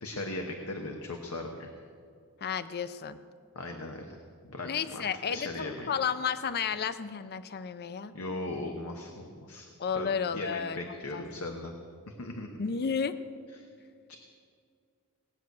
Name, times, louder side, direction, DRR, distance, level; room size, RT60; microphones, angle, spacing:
voice 1, 0.0-1.7 3.5-4.2 4.4-5.0 5.3-5.9 8.1-11.7 12.1-12.5 13.6-13.7 14.1-14.2, left 2 dB, 80° left, 3 dB, 1.1 m, -38 dB
voice 2, 2.4-3.2 4.6-8.1 9.8-11.2 12.6-13.2, left 6 dB, 45° left, 13 dB, 0.5 m, -32 dB
18.5 x 6.3 x 9.4 m, 2.2 s
head